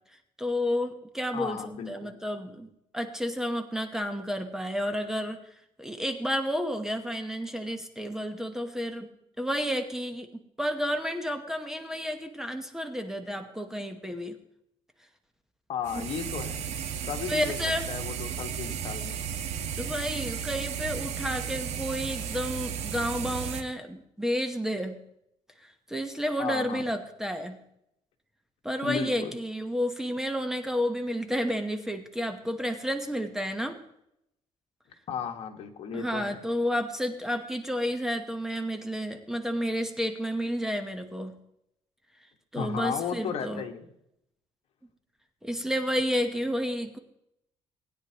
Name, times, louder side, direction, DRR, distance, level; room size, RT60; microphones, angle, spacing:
voice 1, 0.4-1.6 1.9-5.4 5.8-9.1 9.4-14.4 15.9-16.1 17.3-17.9 19.7-25.0 25.9-27.6 28.6-33.8 35.9-41.4 42.5-43.6 45.4-47.0, equal, 5° right, 6 dB, 1.0 m, -31 dB
voice 2, 1.3-2.1 15.7-16.6 17.1-17.6 17.9-19.2 26.4-26.8 28.8-29.3 35.1-36.4 42.6-43.9, left 7 dB, 60° left, 5 dB, 1.6 m, -34 dB
sound 1, 15.8-23.6, right 8 dB, 75° right, 1.3 m, -34 dB
19.5 x 9.7 x 3.0 m, 0.79 s
cardioid pair, 135°, 11 cm